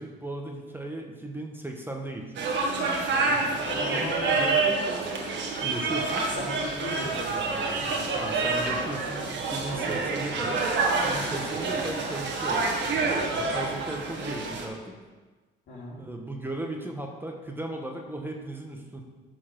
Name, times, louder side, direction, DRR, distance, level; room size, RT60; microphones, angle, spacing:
voice 1, 0.0-2.5 5.6-6.3 7.8-10.6 11.0-12.7 13.3-14.9 16.0-19.0, right 1 dB, 10° right, 2 dB, 1.1 m, -36 dB
sound 1, 2.4-14.7, right 3 dB, 65° right, 1.6 m, -28 dB
voice 2, 3.2-5.3 6.2-8.0 9.7-10.0 11.4-11.7 15.7-16.0, left 2 dB, 70° left, -4 dB, 2.8 m, -37 dB
9.7 x 4.6 x 5.9 m, 1.3 s
cardioid pair, 90°, 20 cm